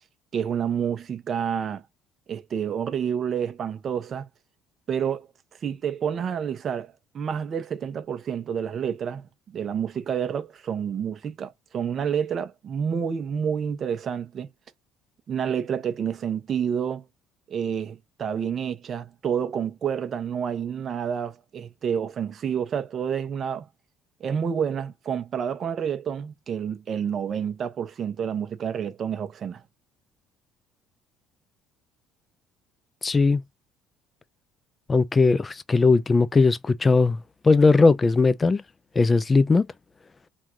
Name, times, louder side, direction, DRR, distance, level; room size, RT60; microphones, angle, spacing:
voice 1, 0.3-1.8 2.3-4.3 4.9-5.3 5.6-14.5 15.3-17.0 17.5-23.7 24.2-29.6, right 7 dB, 40° right, 0.9 m, -29 dB
voice 2, 33.0-33.4 34.9-38.6 39.0-39.7, left 4 dB, 20° left, 0.4 m, -19 dB
3.7 x 2.4 x 4.5 m
cardioid pair, 130°, 0 cm